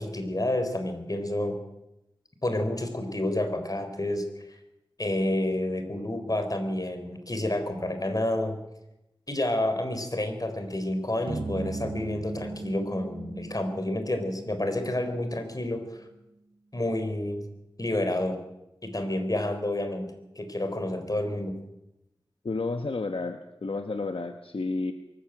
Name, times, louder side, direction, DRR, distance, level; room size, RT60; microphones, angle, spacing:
voice 1, 0.0-1.6 2.4-4.5 5.0-8.6 9.3-16.1 16.7-17.4 17.8-18.4 18.8-21.5, left 1 dB, 40° left, 7 dB, 4.0 m, -29 dB
sound 1, 11.3-15.7, right 3 dB, 65° right, 1.0 m, -38 dB
voice 2, 22.4-24.9, left 3 dB, 75° left, 7 dB, 1.2 m, -31 dB
23.0 x 14.5 x 9.1 m, 0.90 s
wide cardioid pair, 50°, 9 cm